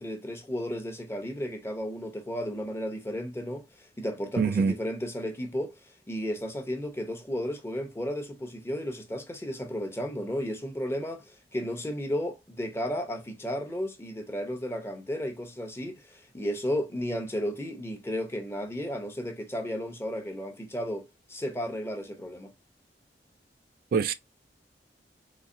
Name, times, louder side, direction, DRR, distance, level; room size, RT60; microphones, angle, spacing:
voice 1, 0.0-5.8 6.1-22.5, equal, 15° left, 0.7 m, -33 dB
voice 2, 4.4-4.8 23.9-24.1, right 5 dB, 55° right, 0.3 m, -24 dB
4.0 x 2.8 x 2.6 m
head